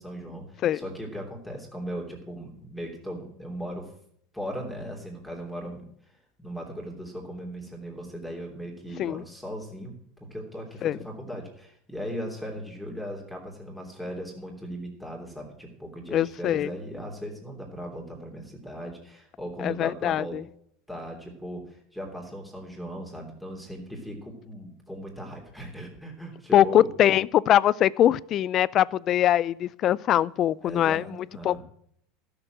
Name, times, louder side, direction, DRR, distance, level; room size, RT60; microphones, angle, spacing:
voice 1, 0.0-3.9 4.3-20.4 20.9-26.9 30.6-31.6, equal, ahead, 3.1 m, -38 dB
voice 2, 16.1-16.7 19.6-20.4 26.5-31.0 31.4-31.6, left 11 dB, 40° left, 0.4 m, -22 dB
12.5 x 6.8 x 8.0 m
supercardioid pair, 120°, 0 cm